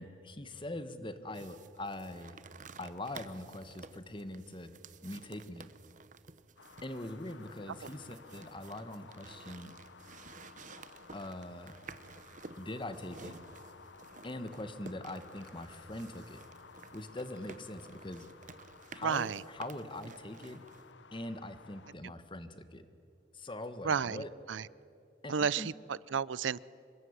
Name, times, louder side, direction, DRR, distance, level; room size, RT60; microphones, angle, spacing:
voice 1, 0.0-2.4 2.8-4.7 5.0-5.7 6.8-9.7 11.1-11.8 12.6-13.4 14.2-16.4 16.9-18.3 18.9-20.6 21.1-22.9 23.3-24.3 25.2-25.7, left 1 dB, 25° left, 10 dB, 1.5 m, -42 dB
sound 1, 1.3-20.9, right 4 dB, 45° right, 1.0 m, -53 dB
sound 2, 6.6-21.9, left 5 dB, 75° left, 0.8 m, -56 dB
voice 2, 19.0-19.4 23.8-24.7 25.3-26.7, right 6 dB, 90° right, 21 dB, 0.5 m, -32 dB
26.5 x 22.0 x 9.7 m, 2.7 s
head